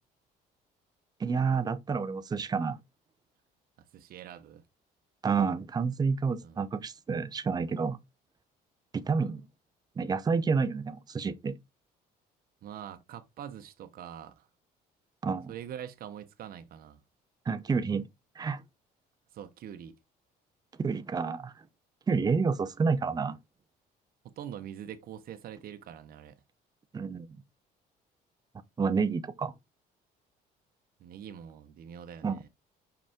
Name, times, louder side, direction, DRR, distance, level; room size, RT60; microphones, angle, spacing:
voice 1, 1.2-2.8 5.2-8.0 8.9-9.5 10.0-11.6 15.2-15.5 17.5-18.1 18.4-18.6 20.8-21.5 22.1-23.4 26.9-27.3 28.8-29.5 32.2-32.4, right 5 dB, 25° right, 0.6 m, -29 dB
voice 2, 3.9-4.6 6.4-6.6 12.6-14.5 15.5-17.0 19.3-20.0 24.2-26.4 31.0-32.5, right 9 dB, 60° right, 0.9 m, -44 dB
5.3 x 5.1 x 3.5 m
cardioid pair, 110°, 17 cm